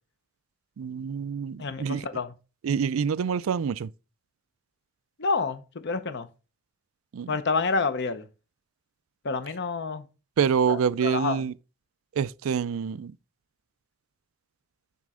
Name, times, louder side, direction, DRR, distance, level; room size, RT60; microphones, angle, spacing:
voice 1, 0.8-2.1 2.6-3.9 7.1-7.4 10.4-11.5 12.1-13.2, right 7 dB, 85° right, 0.4 m, -26 dB
voice 2, 1.6-2.3 5.2-6.3 7.3-8.2 9.2-10.0 10.7-11.4, left 4 dB, 60° left, 0.8 m, -28 dB
9.6 x 4.2 x 3.7 m
head